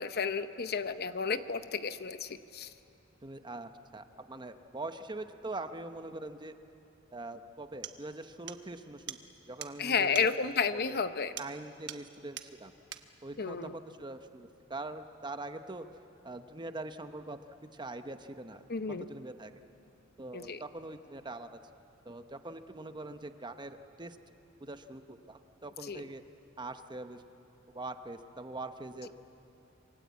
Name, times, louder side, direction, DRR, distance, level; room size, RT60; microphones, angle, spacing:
voice 1, 0.0-2.7 9.8-11.3 13.4-13.8 18.7-19.1 20.3-20.6 25.9-26.0, left 5 dB, 50° left, 11 dB, 0.8 m, -32 dB
voice 2, 3.2-6.5 7.1-9.2 9.5-11.0 11.4-12.7 13.2-15.8 16.2-18.6 19.0-19.6 20.2-21.6 22.0-24.2 24.6-26.2 26.6-27.2 27.7-29.1, right 2 dB, 20° right, 8 dB, 1.0 m, -43 dB
sound 1, 7.3-7.4 7.8-8.0 8.5-8.6 9.1-9.2 9.6-9.8 10.1-10.3 11.4-11.6 11.9-12.1 12.4-12.5 12.9-13.1, right 10 dB, 60° right, 1.1 m, -42 dB
28.0 x 23.5 x 8.4 m, 2.8 s
head